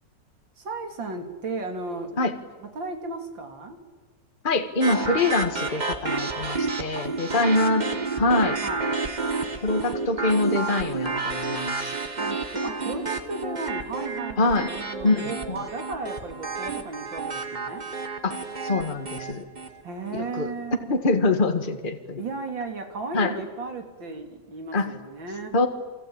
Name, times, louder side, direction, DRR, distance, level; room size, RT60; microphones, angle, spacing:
voice 1, 0.6-2.2 2.6-3.8 6.9-7.9 8.6-9.0 12.2-17.8 19.8-21.0 22.2-25.6, right 3 dB, 85° right, 5 dB, 3.7 m, -35 dB
voice 2, 4.4-7.8 8.2-8.6 9.6-12.0 14.4-14.7 15.0-15.6 18.2-19.5 20.1-20.5 20.9-22.2 23.1-23.3 24.7-24.9 25.5-25.7, left 2 dB, 30° left, 7 dB, 1.8 m, -24 dB
sound 1, 4.8-19.8, right 4 dB, 25° right, 1.6 m, -30 dB
28.0 x 21.5 x 8.8 m, 1.3 s
omnidirectional pair, 2.0 m